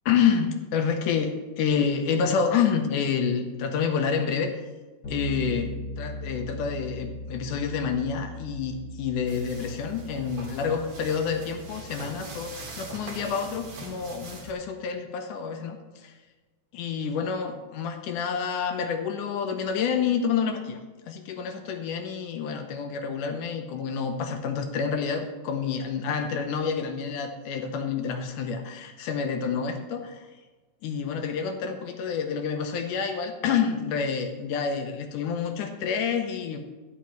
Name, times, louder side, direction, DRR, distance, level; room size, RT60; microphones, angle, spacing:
voice 1, 0.1-4.5 5.1-5.7 6.0-16.1 16.7-20.8 21.1-30.3 30.8-36.6, left 6 dB, 75° left, 5 dB, 2.0 m, -28 dB
Bass guitar, 5.0-14.7, equal, 35° left, 1.9 m, -40 dB
sound 1, 9.3-14.5, right 3 dB, 45° right, 2.3 m, -42 dB
13.0 x 10.5 x 3.1 m, 1.2 s
omnidirectional pair, 4.3 m